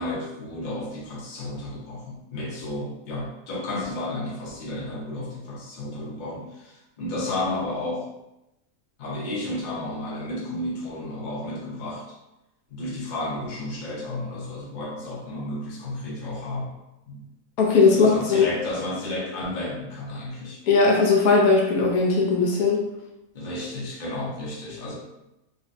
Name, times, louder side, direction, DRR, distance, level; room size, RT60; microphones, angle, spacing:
voice 1, 0.0-8.1 9.0-12.0 12.7-16.7 17.1-17.2 17.9-20.6 23.3-24.9, left 1 dB, 40° left, -5 dB, 0.7 m, -32 dB
voice 2, 17.6-18.5 20.7-22.9, left 4 dB, 75° left, -2 dB, 1.1 m, -19 dB
3.8 x 2.1 x 2.5 m, 0.92 s
omnidirectional pair, 1.6 m